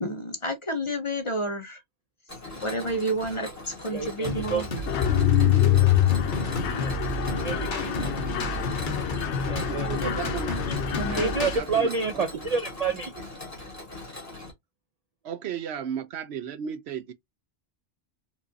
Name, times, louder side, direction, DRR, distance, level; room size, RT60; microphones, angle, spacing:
voice 1, 0.0-1.8 2.6-4.7 7.8-7.9 8.2-8.3 11.0-11.3, right 1 dB, 35° left, 0.7 m, -30 dB
Mechanisms, 2.3-14.5, left 2 dB, 15° left, 1.6 m, -41 dB
voice 2, 3.9-4.6 6.7-6.9 7.4-8.2 9.5-9.9 11.1-13.1, right 4 dB, 50° right, 0.5 m, -29 dB
sound 1, 4.2-11.6, equal, 50° left, 1.1 m, -32 dB
Mechanisms 2, 4.9-11.6, left 12 dB, 85° left, 0.9 m, -25 dB
voice 3, 9.6-10.6 11.1-12.4 15.2-17.1, right 8 dB, 75° right, 0.9 m, -35 dB
4.5 x 2.6 x 2.7 m
omnidirectional pair, 1.1 m